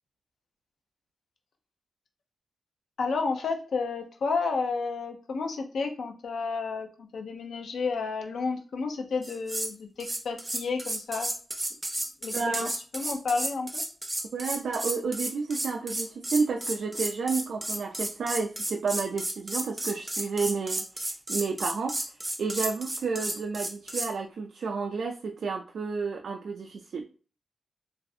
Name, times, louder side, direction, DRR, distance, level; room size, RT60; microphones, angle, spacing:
voice 1, 3.0-11.3 12.2-12.7 12.9-13.8, left 4 dB, 85° left, 4 dB, 0.6 m, -31 dB
sound 1, 9.2-9.7 10.0-24.1, right 1 dB, 15° right, 0.4 m, -33 dB
voice 2, 12.3-12.7 14.3-22.0 22.4-27.0, right 4 dB, 85° right, 3 dB, 0.3 m, -31 dB
3.1 x 2.4 x 2.6 m, 0.38 s
wide cardioid pair, 130°, 0 cm